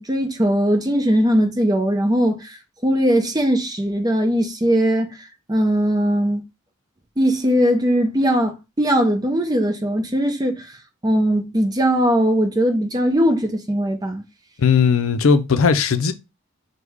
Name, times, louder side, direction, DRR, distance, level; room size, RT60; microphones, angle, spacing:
voice 1, 0.0-2.6 2.8-6.4 7.2-10.7 11.0-14.2, equal, 20° right, 0.7 m, -20 dB
voice 2, 14.6-16.1, left 5 dB, 85° left, 0.5 m, -17 dB
6.2 x 2.2 x 3.5 m
head